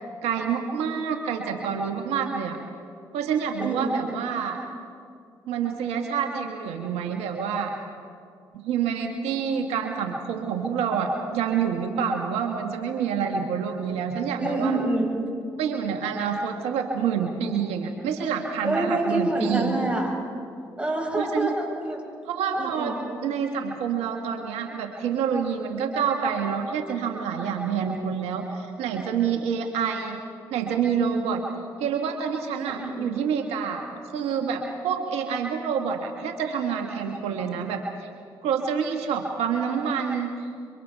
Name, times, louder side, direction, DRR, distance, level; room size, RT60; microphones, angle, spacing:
voice 1, 0.2-2.6 3.1-4.6 5.5-7.7 8.6-14.8 15.6-19.8 21.2-21.5 22.2-22.9 23.2-30.2 30.5-31.4 31.8-33.8 34.1-38.1 38.4-40.5, right 7 dB, 80° right, 3 dB, 1.5 m, -27 dB
voice 2, 3.6-4.0 14.4-15.2 18.6-20.1 20.8-22.0 22.5-22.9 32.6-33.1, right 2 dB, 10° right, -2 dB, 7.7 m, -27 dB
27.0 x 24.5 x 4.6 m, 2.4 s
supercardioid pair, 50°, 10 cm